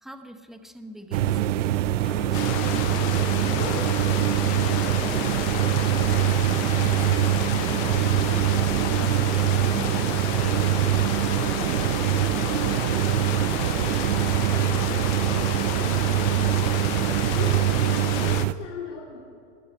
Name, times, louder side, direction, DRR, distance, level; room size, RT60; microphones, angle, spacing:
voice 1, 0.0-3.8 4.3-8.5 9.0-10.7, equal, ahead, 7 dB, 0.8 m, -42 dB
sound 1, 1.1-18.5, right 13 dB, 90° right, 0.6 m, -23 dB
sound 2, 2.0-17.6, left 3 dB, 20° left, 2.9 m, -40 dB
sound 3, 2.3-18.5, left 15 dB, 35° left, 0.6 m, -32 dB
voice 2, 17.0-17.7 18.2-19.2, left 6 dB, 80° left, -3 dB, 3.0 m, -37 dB
20.5 x 6.9 x 9.9 m, 2.6 s
supercardioid pair, 140°, 36 cm